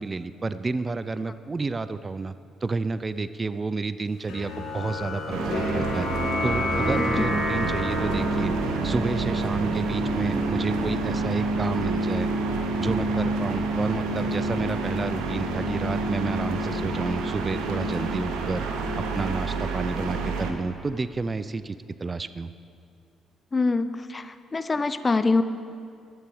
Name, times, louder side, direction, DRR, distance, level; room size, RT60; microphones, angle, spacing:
voice 1, 0.0-2.3 2.6-6.1 6.4-8.5 8.8-12.3 12.8-18.7 19.0-22.5, right 3 dB, 30° right, 14 dB, 0.4 m, -30 dB
sound 1, 4.3-11.1, left 2 dB, 70° left, 2.1 m, -31 dB
sound 2, 5.3-20.5, right 3 dB, 80° right, 0.9 m, -28 dB
sound 3, 8.2-18.3, right 3 dB, 55° right, 3.1 m, -43 dB
voice 2, 23.5-25.4, left 3 dB, 30° left, 12 dB, 0.5 m, -24 dB
11.5 x 8.9 x 4.8 m, 2.3 s
supercardioid pair, 60°, 0 cm